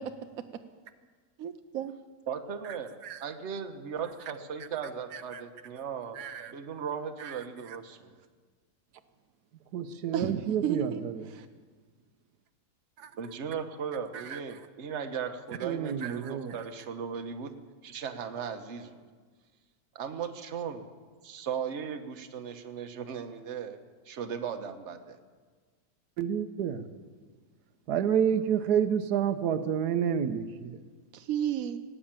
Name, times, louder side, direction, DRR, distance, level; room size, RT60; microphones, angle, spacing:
voice 1, 1.4-1.9 10.1-11.0 11.4-11.5 31.1-31.8, right 9 dB, 65° right, 8 dB, 1.0 m, -32 dB
voice 2, 2.3-2.9 3.2-8.1 13.2-17.5 17.8-19.0 19.9-20.9 21.2-23.8 24.0-25.2, right 7 dB, 50° right, 7 dB, 1.2 m, -37 dB
voice 3, 5.1-5.7 6.1-6.5 7.2-7.8 9.7-11.3 13.0-13.1 14.1-14.4 15.6-16.6 26.2-26.9 27.9-30.8, right 8 dB, 85° right, 10 dB, 1.4 m, -30 dB
18.0 x 8.6 x 8.8 m, 1.5 s
omnidirectional pair, 1.7 m